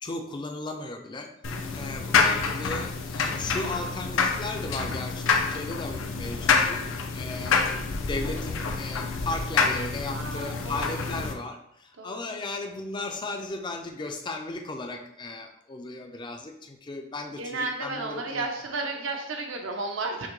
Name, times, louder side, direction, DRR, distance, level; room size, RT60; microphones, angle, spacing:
voice 1, 0.0-1.3 1.7-6.8 7.1-7.6 8.0-18.5, left 2 dB, 25° left, 4 dB, 0.4 m, -36 dB
sound 1, 1.4-11.3, left 5 dB, 90° left, 0.5 m, -27 dB
voice 2, 10.1-11.4 12.0-12.4 17.4-20.3, right 3 dB, 80° right, 2 dB, 0.7 m, -33 dB
5.7 x 2.2 x 3.0 m, 0.74 s
head